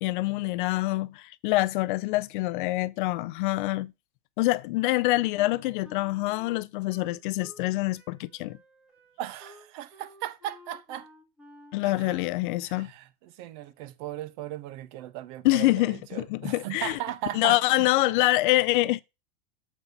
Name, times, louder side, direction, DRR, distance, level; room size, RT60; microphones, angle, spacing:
voice 1, 0.0-3.9 4.4-8.6 11.7-12.9 15.4-17.0 17.3-19.0, left 19 dB, 55° left, 0.4 m, -25 dB
Wind instrument woodwind instrument, 4.8-7.7 7.9-12.5, left 1 dB, 5° right, 1.5 m, -53 dB
voice 2, 9.2-11.1 11.8-12.2 12.6-17.9, right 13 dB, 50° right, 0.8 m, -37 dB
7.3 x 4.0 x 5.2 m
supercardioid pair, 150°, 31 cm